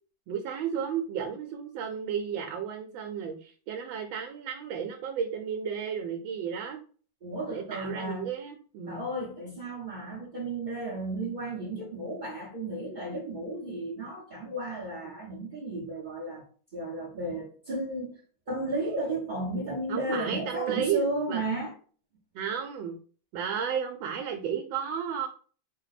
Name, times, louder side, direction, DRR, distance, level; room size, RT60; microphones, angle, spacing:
voice 1, 0.3-6.8 7.5-9.0 19.9-21.4 22.3-23.0 23.3-25.3, right 7 dB, 80° right, 1.3 m, -33 dB
voice 2, 7.2-8.3 8.9-16.4 16.7-18.2 18.5-21.7, right 2 dB, 45° right, 0.6 m, -33 dB
4.4 x 2.1 x 4.0 m
omnidirectional pair, 2.1 m